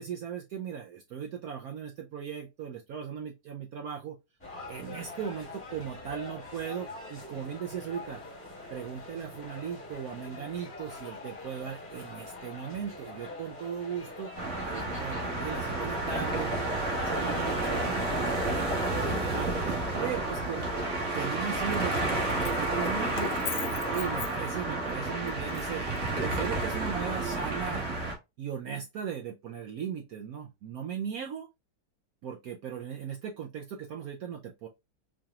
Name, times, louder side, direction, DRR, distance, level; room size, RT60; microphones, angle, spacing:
voice 1, 0.0-4.2 4.7-8.2 8.7-14.3 14.6-16.5 16.9-17.8 18.1-19.5 19.9-20.6 21.1-25.8 26.2-27.9 28.4-31.5 32.2-34.7, right 8 dB, 90° right, 1 dB, 0.8 m, -37 dB
sound 1, 4.4-18.4, left 2 dB, 5° left, 1.3 m, -43 dB
sound 2, 14.4-28.1, right 2 dB, 45° right, 1.5 m, -31 dB
Keys jangling, 21.7-24.8 25.3-26.6, left 8 dB, 80° left, 1.5 m, -41 dB
4.9 x 2.8 x 2.3 m, 0.23 s
omnidirectional pair, 2.2 m